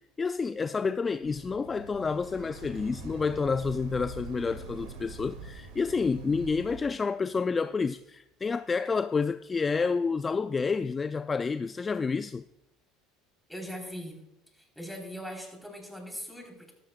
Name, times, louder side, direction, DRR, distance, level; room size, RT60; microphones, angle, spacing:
voice 1, 0.2-12.4, left 5 dB, 25° left, 0.4 m, -29 dB
sound 1, 1.2-6.8, right 4 dB, 75° right, 2.3 m, -44 dB
voice 2, 13.5-14.2 14.5-16.7, equal, ahead, 3.7 m, -40 dB
15.0 x 12.5 x 2.3 m
hypercardioid pair, 70°, 0 cm